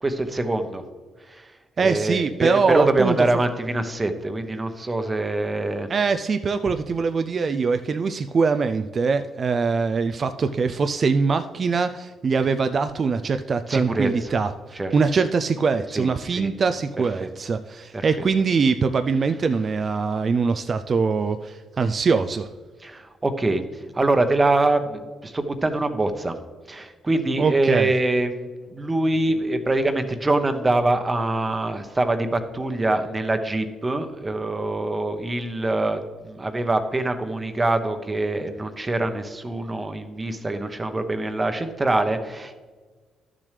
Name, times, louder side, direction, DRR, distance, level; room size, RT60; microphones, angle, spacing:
voice 1, 0.0-0.8 1.3-1.5 1.8-5.9 13.7-14.3 14.8-14.9 15.9-16.5 17.2-17.3 17.9-18.0 22.8-23.6 23.9-26.3 26.7-42.5, right 2 dB, 20° right, 8 dB, 0.9 m, -24 dB
voice 2, 1.8-3.3 5.9-22.5 27.4-27.9, right 5 dB, 45° right, 9 dB, 0.4 m, -23 dB
11.5 x 7.3 x 3.3 m, 1.4 s
cardioid pair, 90°, 0 cm